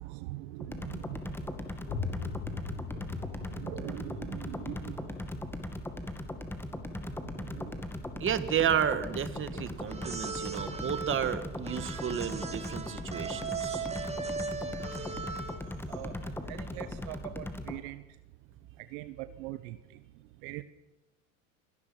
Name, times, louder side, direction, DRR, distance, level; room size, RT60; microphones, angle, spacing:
voice 1, 0.2-1.2 3.6-4.9 15.9-16.1 16.5-18.0 18.9-19.7 20.4-20.6, right 17 dB, 65° right, 1.1 m, -41 dB
sound 1, 0.6-17.8, left 1 dB, 5° left, 2.1 m, -39 dB
sound 2, 1.9-7.5, left 6 dB, 60° left, 4.8 m, -41 dB
voice 2, 8.2-13.9, right 9 dB, 30° right, 1.9 m, -32 dB
sound 3, 9.9-15.8, right 5 dB, 15° right, 2.3 m, -38 dB
29.5 x 17.5 x 6.0 m
supercardioid pair, 100°, 38 cm